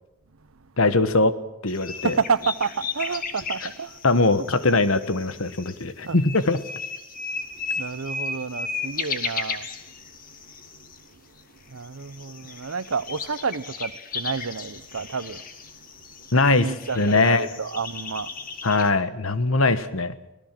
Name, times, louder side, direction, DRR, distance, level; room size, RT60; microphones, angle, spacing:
voice 1, 0.8-1.3 1.6-2.1 4.0-6.6 16.3-17.5 18.6-20.1, left 3 dB, 70° left, 1.3 m, -21 dB
sound 1, 1.7-11.1 11.4-11.5 11.7-18.9, left 4 dB, 40° left, 1.9 m, -35 dB
voice 2, 2.0-4.0 6.1-6.2 7.8-9.7 11.7-15.4 16.5-18.3 19.6-19.8, right 5 dB, 70° right, 0.8 m, -29 dB
24.5 x 17.5 x 7.6 m
head